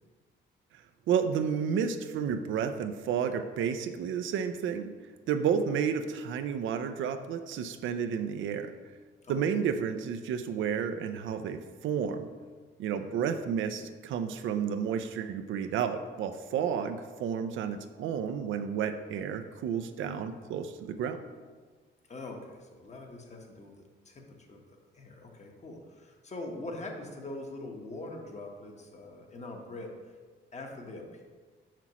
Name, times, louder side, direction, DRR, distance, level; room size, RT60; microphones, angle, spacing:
voice 1, 1.1-4.9 5.3-8.7 9.3-12.3 12.8-21.2, right 7 dB, 75° right, 8 dB, 0.5 m, -31 dB
voice 2, 22.1-23.7 24.0-24.6 24.9-30.2 30.5-31.2, left 2 dB, 35° left, 2 dB, 1.1 m, -43 dB
5.9 x 5.9 x 3.0 m, 1.4 s
cardioid pair, 90°, 20 cm